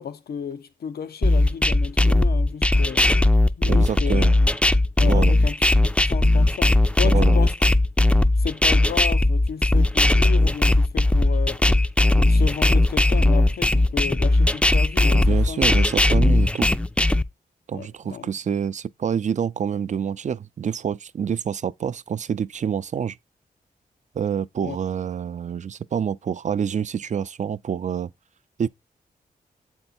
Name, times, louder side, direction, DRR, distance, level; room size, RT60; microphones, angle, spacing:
voice 1, 0.0-3.2 3.6-4.3 5.0-7.6 8.4-11.6 12.2-15.7 17.7-18.3 24.6-24.8, left 7 dB, 90° left, 0.9 m, -33 dB
sound 1, 1.2-17.2, left 2 dB, 5° left, 0.4 m, -18 dB
voice 2, 3.7-4.4 5.0-5.3 7.0-7.4 15.1-16.7 17.7-23.2 24.2-28.1 28.6-28.7, right 7 dB, 50° right, 0.4 m, -27 dB
7.9 x 4.5 x 4.2 m
cardioid pair, 80°, 16 cm